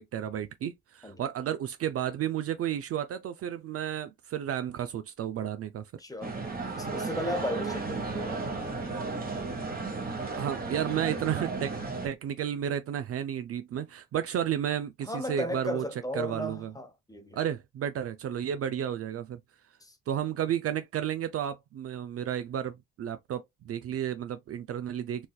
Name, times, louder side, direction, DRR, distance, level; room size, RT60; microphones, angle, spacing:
voice 1, 0.0-5.9 10.4-11.7 12.0-15.9 16.1-16.7 17.3-19.4 20.1-25.3, right 10 dB, 50° right, 0.4 m, -32 dB
voice 2, 6.0-6.4 6.8-9.5 15.0-17.4 19.8-20.0, left 1 dB, 10° left, 0.9 m, -36 dB
sound 1, 6.2-12.1, right 3 dB, 30° right, 1.3 m, -34 dB
4.1 x 2.6 x 2.2 m
cardioid pair, 90°, 30 cm